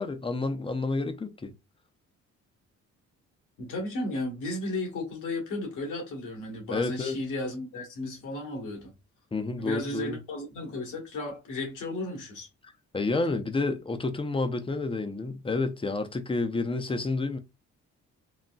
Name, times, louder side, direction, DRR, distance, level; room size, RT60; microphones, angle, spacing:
voice 1, 0.0-1.5 6.7-7.2 9.3-10.2 12.9-17.4, left 3 dB, 20° left, 0.5 m, -29 dB
voice 2, 3.6-8.9 9.6-12.5, left 2 dB, 80° left, 1.5 m, -34 dB
3.9 x 2.2 x 2.2 m
cardioid pair, 90°, 30 cm